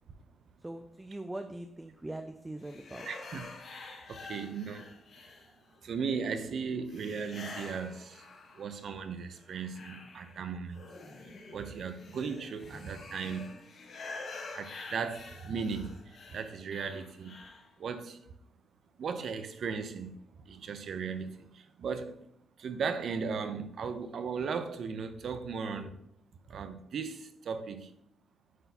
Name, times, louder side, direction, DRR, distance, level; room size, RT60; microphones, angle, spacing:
voice 1, 0.6-3.1, right 1 dB, 15° right, 0.4 m, -41 dB
sound 1, 2.6-5.8 6.9-8.9 9.3-17.7, left 3 dB, 60° left, 1.2 m, -47 dB
voice 2, 3.1-3.8 4.1-4.9 5.8-8.3 8.6-10.8 11.2-13.5 14.5-17.4 17.8-18.2 19.0-22.3 22.6-26.0 26.5-27.9, right 5 dB, 60° right, 0.6 m, -37 dB
9.5 x 4.0 x 2.8 m
cardioid pair, 115°, 0 cm